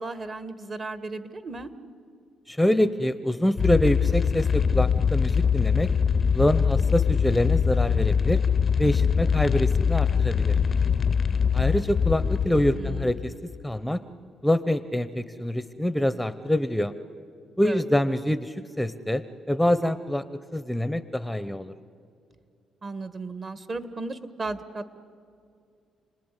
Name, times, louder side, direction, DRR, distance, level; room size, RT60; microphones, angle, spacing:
voice 1, 0.0-1.7 12.8-13.1 17.6-17.8 22.8-25.0, right 3 dB, 40° right, 12 dB, 1.5 m, -35 dB
voice 2, 2.5-5.9 6.3-8.4 8.8-10.6 11.5-13.3 13.6-14.0 14.4-16.9 17.6-20.2 20.5-21.7, left 1 dB, 5° left, 13 dB, 0.8 m, -25 dB
sound 1, 3.6-13.6, left 6 dB, 40° left, 0.6 m, -23 dB
29.5 x 19.5 x 9.9 m, 2.4 s
cardioid pair, 90°, 0 cm